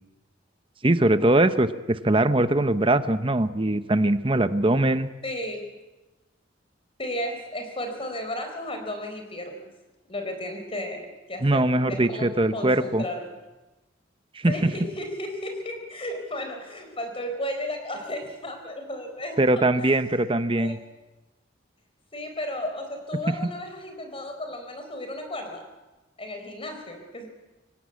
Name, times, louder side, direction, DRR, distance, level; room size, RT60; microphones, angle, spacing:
voice 1, 0.8-5.1 11.4-13.0 14.4-14.5 19.4-20.8, right 1 dB, 30° right, 11 dB, 0.9 m, -21 dB
voice 2, 5.2-5.7 7.0-9.7 10.1-13.2 14.4-19.4 19.8-20.1 20.6-20.8 22.1-25.7 26.2-27.3, left 1 dB, 30° left, 5 dB, 4.5 m, -34 dB
24.5 x 18.0 x 8.4 m, 1.1 s
head